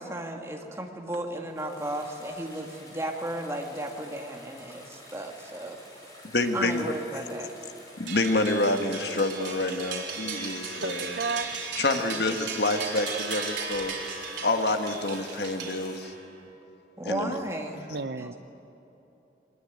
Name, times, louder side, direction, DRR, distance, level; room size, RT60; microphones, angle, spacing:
voice 1, 0.0-5.8 6.5-7.5 14.4-14.5 17.0-18.4, right 1 dB, 15° right, 2 dB, 2.1 m, -34 dB
sound 1, 1.5-16.1, left 1 dB, 20° left, 4.8 m, -50 dB
voice 2, 6.3-7.2 8.0-11.2 11.8-13.9 14.4-16.1 17.0-17.4, left 2 dB, 65° left, 6 dB, 1.5 m, -28 dB
sound 2, 8.1-16.2, right 5 dB, 90° right, 3.9 m, -36 dB
voice 3, 10.8-11.5 17.9-18.3, right 4 dB, 65° right, 13 dB, 0.7 m, -32 dB
23.5 x 20.0 x 9.1 m, 3.0 s
head